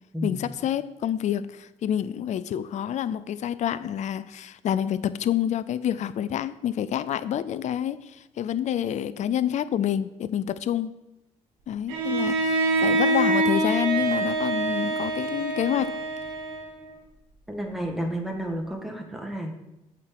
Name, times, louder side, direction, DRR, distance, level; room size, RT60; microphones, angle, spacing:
voice 1, 0.2-10.9 11.7-15.9, left 10 dB, 55° left, 0.5 m, -28 dB
Bowed string instrument, 11.9-16.9, right 2 dB, 90° right, 1.6 m, -25 dB
voice 2, 17.5-19.5, right 1 dB, ahead, 1.8 m, -31 dB
8.5 x 4.5 x 6.7 m
hypercardioid pair, 55°, 15 cm